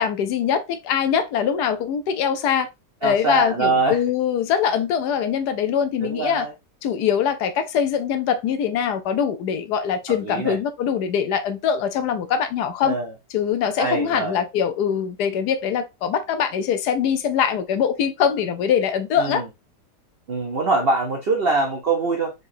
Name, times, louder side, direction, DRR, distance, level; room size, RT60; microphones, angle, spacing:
voice 1, 0.0-2.7 3.0-6.5 6.8-13.0 13.3-19.4, left 8 dB, 75° left, 1.1 m, -23 dB
voice 2, 3.0-4.0 6.0-6.5 10.2-10.6 12.8-13.1 13.8-14.4 19.2-19.4 20.3-22.3, right 3 dB, 60° right, 0.6 m, -23 dB
4.1 x 3.8 x 2.5 m
omnidirectional pair, 1.8 m